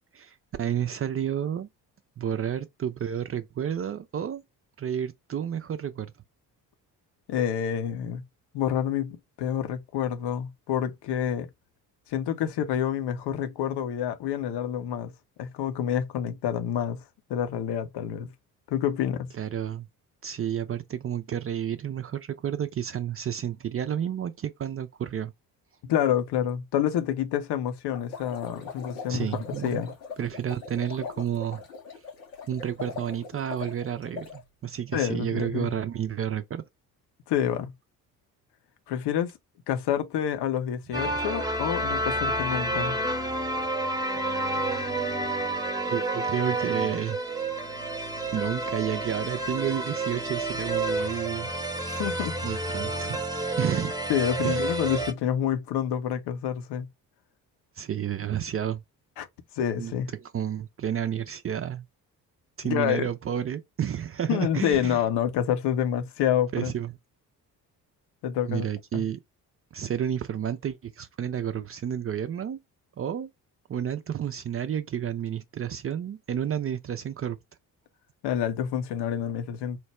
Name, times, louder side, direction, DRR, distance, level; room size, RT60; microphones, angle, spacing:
voice 1, 0.1-1.7 2.2-4.4 4.8-6.1 19.4-19.9 20.2-25.3 29.1-29.8 30.2-31.6 32.5-36.6 41.0-41.1 44.1-44.6 45.9-47.2 48.3-51.5 52.4-53.2 53.6-53.9 54.4-54.7 57.8-58.8 59.8-61.9 62.6-65.0 66.5-66.9 68.5-69.2 69.7-72.6 73.0-73.3 73.7-77.4, right 9 dB, 30° right, 0.5 m, -31 dB
voice 2, 7.3-8.2 8.5-11.5 12.1-15.1 15.4-17.0 17.3-18.3 18.7-19.3 25.9-29.9 34.9-35.7 37.3-37.7 38.9-39.3 39.7-43.0 51.8-52.4 54.1-56.9 59.2-59.3 59.6-60.1 62.6-63.1 64.3-66.7 68.2-68.7 68.9-69.0 78.2-79.8, left 9 dB, 55° left, 0.8 m, -28 dB
sound 1, 27.9-34.4, left 5 dB, 80° left, 1.0 m, -41 dB
sound 2, 40.9-55.1, right 2 dB, 10° right, 0.8 m, -29 dB
4.5 x 2.1 x 3.1 m
hypercardioid pair, 45°, 48 cm